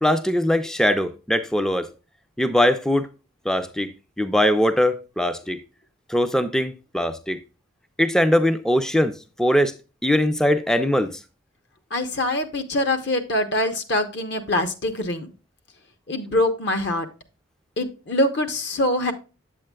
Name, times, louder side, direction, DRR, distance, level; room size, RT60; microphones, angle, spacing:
voice 1, 0.0-1.9 2.4-3.1 3.5-3.9 4.2-5.6 6.1-7.4 8.0-9.1 9.4-9.7 10.0-11.1, left 1 dB, 5° left, 0.4 m, -21 dB
voice 2, 11.9-15.3 16.1-17.1 17.8-19.1, left 1 dB, 55° left, 0.9 m, -24 dB
8.1 x 7.6 x 2.2 m
head